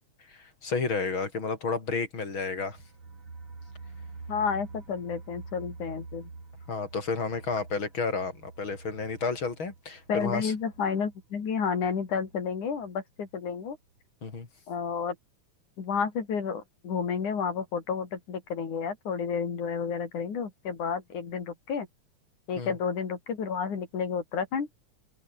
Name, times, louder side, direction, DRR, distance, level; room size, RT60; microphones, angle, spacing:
voice 1, 0.3-2.8 6.7-10.5 14.2-14.5 22.6-22.8, left 4 dB, 40° left, 4.9 m, -31 dB
sound 1, 2.3-12.9 13.2-13.3 13.7-13.8, right 3 dB, 45° right, 6.4 m, -47 dB
voice 2, 4.3-6.3 10.1-13.8 14.7-15.1 15.8-21.9 22.5-24.8, left 6 dB, 80° left, 5.0 m, -31 dB
omnidirectional pair, 3.5 m